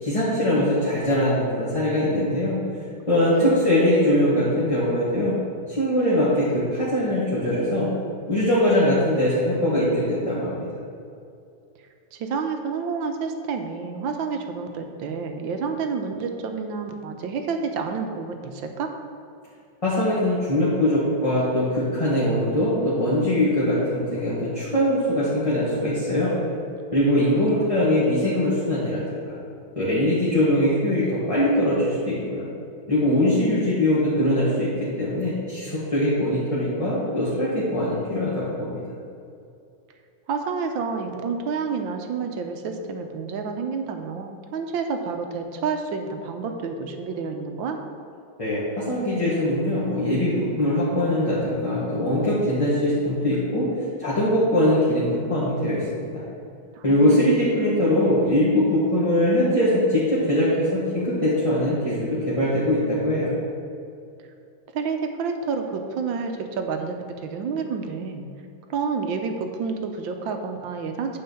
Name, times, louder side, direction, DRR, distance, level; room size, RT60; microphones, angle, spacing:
voice 1, 0.0-2.6 3.1-5.3 5.7-7.9 8.3-10.7 19.8-26.3 26.9-29.4 29.7-32.5 32.9-34.7 35.0-38.8 48.4-53.7 54.0-56.2 56.8-63.3, left 1 dB, 15° left, -9 dB, 1.5 m, -22 dB
voice 2, 3.2-3.6 12.1-18.9 27.4-27.8 40.3-47.8 56.7-57.4 64.7-68.3 68.7-71.2, right 5 dB, 75° right, 5 dB, 1.5 m, -29 dB
9.5 x 4.3 x 7.0 m, 2.6 s
omnidirectional pair, 2.2 m